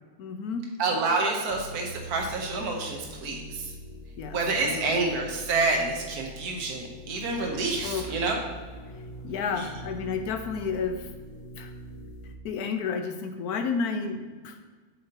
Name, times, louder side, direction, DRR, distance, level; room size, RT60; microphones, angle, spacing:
voice 1, 0.2-0.7 4.2-5.0 7.8-8.1 9.2-11.1 11.6-11.7 12.4-14.6, left 5 dB, 80° left, 6 dB, 1.3 m, -31 dB
voice 2, 0.8-3.7 4.3-8.4 9.5-9.7, right 3 dB, 75° right, 1 dB, 1.6 m, -28 dB
sound 1, 1.5-12.3, equal, 60° left, 1.2 m, -43 dB
7.9 x 7.0 x 2.9 m, 1.4 s
omnidirectional pair, 1.6 m